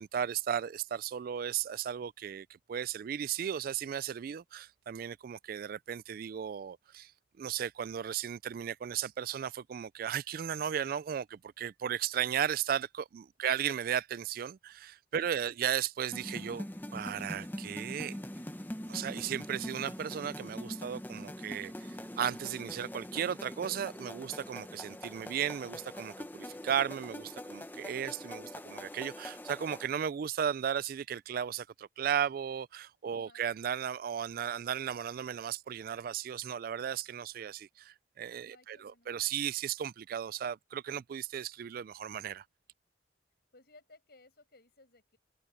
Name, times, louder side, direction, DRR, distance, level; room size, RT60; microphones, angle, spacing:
voice 1, 0.0-7.1 7.4-16.7 16.9-18.2 18.9-42.4, right 9 dB, 55° right, 0.3 m, -35 dB
voice 2, 13.4-13.8 15.2-15.7 33.1-33.5 38.5-39.1 43.5-45.2, left 2 dB, 60° left, 8.0 m, -62 dB
sound 1, 16.1-29.9, left 1 dB, 10° left, 1.0 m, -43 dB
head